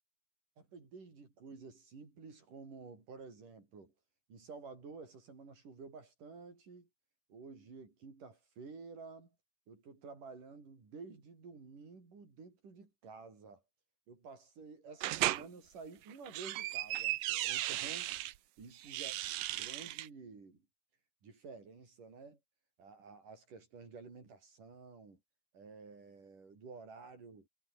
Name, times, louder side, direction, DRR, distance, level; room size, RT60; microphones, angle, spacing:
voice 1, 0.6-3.9 4.3-6.9 7.3-9.4 9.7-13.6 14.1-18.1 18.6-19.1 19.5-20.6 21.2-22.4 22.8-25.2 25.5-27.5, right 4 dB, 60° right, 7.7 m, -51 dB
sound 1, 15.0-15.4 16.1-18.3 18.8-20.1, right 15 dB, 75° right, 2.6 m, -36 dB
omnidirectional pair, 4.3 m